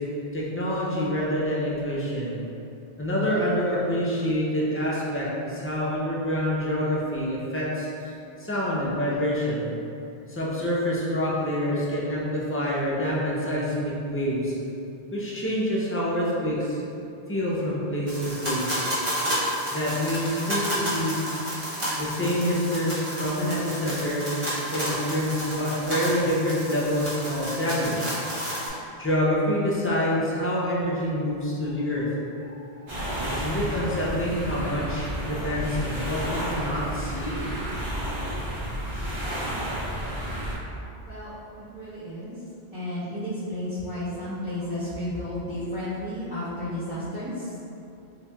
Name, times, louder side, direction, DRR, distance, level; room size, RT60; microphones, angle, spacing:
voice 1, 0.0-2.3 3.0-8.1 8.4-9.6 10.3-14.5 15.1-16.8 17.3-18.8 19.7-21.3 22.0-24.3 24.7-28.7 29.0-32.1 32.4-32.5 32.7-32.9 33.3-37.4 40.7-40.8, equal, 20° left, -7 dB, 0.3 m, -27 dB
sound 1, 18.1-28.7, equal, 30° right, 1.1 m, -31 dB
sound 2, 32.9-40.5, equal, 65° right, 1.2 m, -31 dB
voice 2, 41.1-41.4 41.7-42.3 42.7-47.5, left 1 dB, 5° right, -16 dB, 1.0 m, -32 dB
4.3 x 3.1 x 2.3 m, 2.7 s
omnidirectional pair, 1.1 m